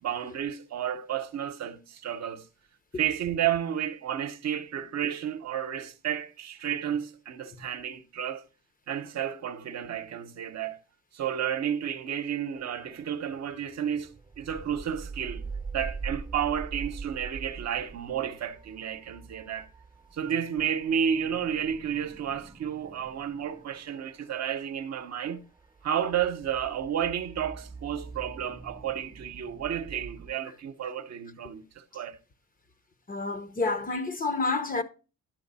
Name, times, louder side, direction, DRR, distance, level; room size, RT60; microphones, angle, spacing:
voice 1, 0.0-2.5 3.0-8.4 8.9-10.8 11.1-14.1 14.4-15.4 15.7-19.7 20.1-25.4 25.8-32.2, right 9 dB, 60° right, 0.9 m, -31 dB
sound 1, 12.5-30.3, right 4 dB, 15° right, 0.7 m, -44 dB
voice 2, 33.1-34.8, left 3 dB, 30° left, 0.8 m, -29 dB
10.5 x 6.4 x 4.1 m
cardioid pair, 90°, 30 cm